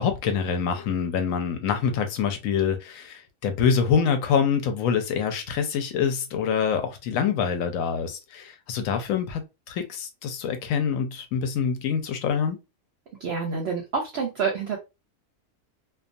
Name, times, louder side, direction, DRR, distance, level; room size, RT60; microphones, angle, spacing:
voice 1, 0.0-12.6, left 7 dB, 70° left, 0.9 m, -25 dB
voice 2, 13.2-14.8, right 5 dB, 60° right, 0.7 m, -27 dB
2.3 x 2.3 x 2.5 m
omnidirectional pair, 1.5 m